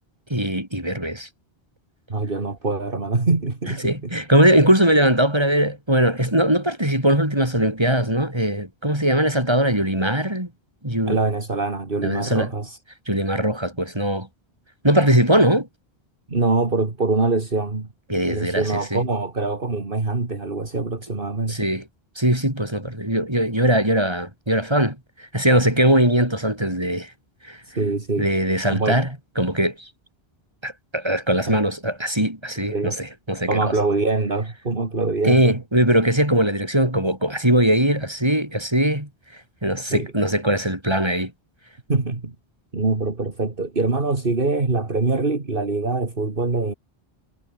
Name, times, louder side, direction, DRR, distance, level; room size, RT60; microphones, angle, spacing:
voice 1, 0.3-1.3 3.8-10.5 10.8-11.2 12.0-12.5 13.1-14.3 14.8-15.7 18.1-19.0 21.5-21.8 22.2-27.1 27.4-27.6 28.2-29.1 29.4-29.9 30.6-33.7 35.2-39.1 39.6-41.3, right 1 dB, 25° right, 7.0 m, -20 dB
voice 2, 2.1-4.1 11.1-12.8 16.3-17.9 18.3-21.7 27.8-28.3 28.6-29.0 31.5-31.6 32.7-32.9 33.5-35.6 39.9-40.1 41.9-42.4 42.7-46.7, right 3 dB, 55° right, 2.7 m, -24 dB
omnidirectional pair, 1.1 m